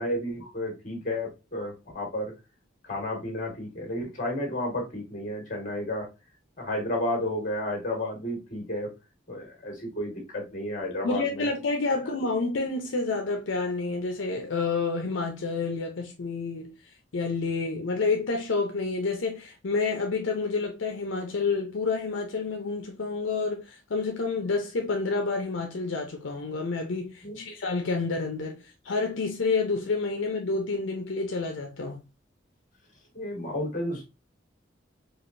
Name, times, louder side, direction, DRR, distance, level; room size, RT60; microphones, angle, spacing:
voice 1, 0.0-2.3 2.8-6.1 6.6-8.9 9.3-11.5 12.0-12.1 27.2-27.5 33.1-34.1, left 1 dB, 45° left, 1.7 m, -32 dB
voice 2, 11.0-16.7 17.1-32.0, left 4 dB, 80° left, 0.6 m, -29 dB
4.8 x 2.5 x 2.6 m
head